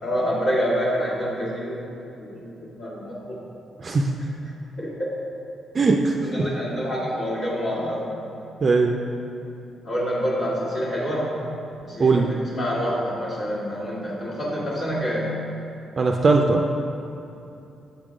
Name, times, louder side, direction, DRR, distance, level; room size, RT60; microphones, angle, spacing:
voice 1, 0.0-3.4 4.8-5.1 6.2-8.1 9.8-11.4 11.8-15.3, equal, 65° left, -10 dB, 1.6 m, -27 dB
voice 2, 3.8-4.1 5.7-6.1 8.6-8.9 12.0-12.3 16.0-16.6, right 3 dB, 40° right, 2 dB, 0.4 m, -19 dB
7.5 x 3.7 x 5.0 m, 2.7 s
cardioid pair, 115°, 0 cm